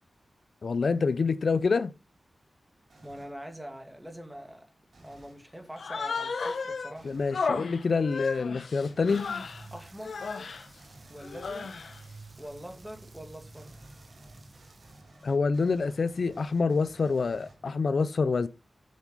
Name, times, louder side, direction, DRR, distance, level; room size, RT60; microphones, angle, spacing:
voice 1, 0.6-1.9 7.0-9.3 15.2-18.5, left 4 dB, 70° left, 0.5 m, -27 dB
sound 1, 2.9-3.4 4.9-5.5 6.9-7.4 8.8-9.3 10.8-11.3 13.5-17.9, right 1 dB, 85° right, 4.9 m, -55 dB
voice 2, 3.0-4.7 5.0-7.2 9.7-10.2 11.1-11.7 12.4-13.7, equal, 10° right, 2.5 m, -44 dB
Human voice, 5.8-6.9 7.3-9.7 10.0-10.6 11.2-12.0, left 4 dB, 85° left, 1.2 m, -33 dB
sound 2, 9.1-15.0, right 3 dB, 45° right, 1.4 m, -51 dB
7.4 x 7.2 x 5.6 m
wide cardioid pair, 75°, 0 cm